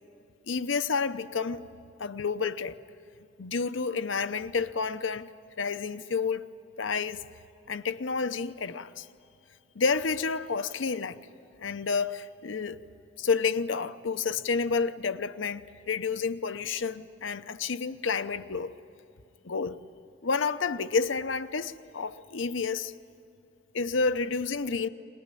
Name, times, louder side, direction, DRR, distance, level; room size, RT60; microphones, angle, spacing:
voice 1, 0.5-1.6 2.0-2.8 3.4-5.3 5.6-6.5 6.8-7.2 7.7-9.1 9.8-11.2 11.6-12.8 13.2-18.8 19.4-19.8 20.2-22.9 23.7-24.9, left 5 dB, 75° left, 0.7 m, -30 dB
23.0 x 20.0 x 9.9 m
head